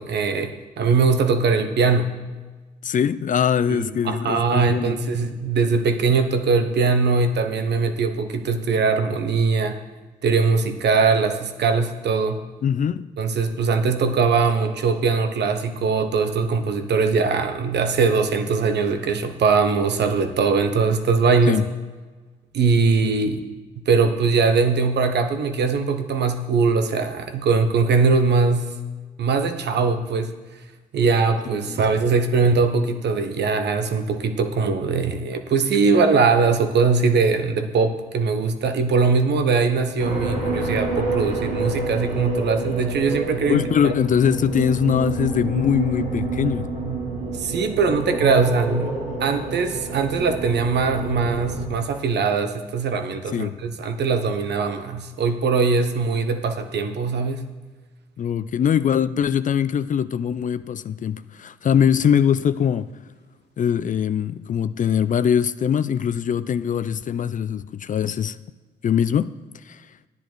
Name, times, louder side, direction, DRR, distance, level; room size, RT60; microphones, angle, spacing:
voice 1, 0.0-2.1 3.7-9.8 10.2-12.4 13.2-21.6 22.5-23.4 23.8-28.7 29.2-30.3 30.9-43.9 47.3-57.4, right 4 dB, 55° right, 1.0 m, -21 dB
voice 2, 2.8-5.0 12.6-13.1 21.5-21.6 31.7-31.8 43.5-46.7 53.3-53.6 58.2-62.9 63.6-68.4 68.8-69.3 69.6-69.9, left 8 dB, 40° left, 0.4 m, -22 dB
sound 1, 40.0-51.6, right 3 dB, 85° right, 2.3 m, -28 dB
11.0 x 10.0 x 4.6 m
hypercardioid pair, 45°, 20 cm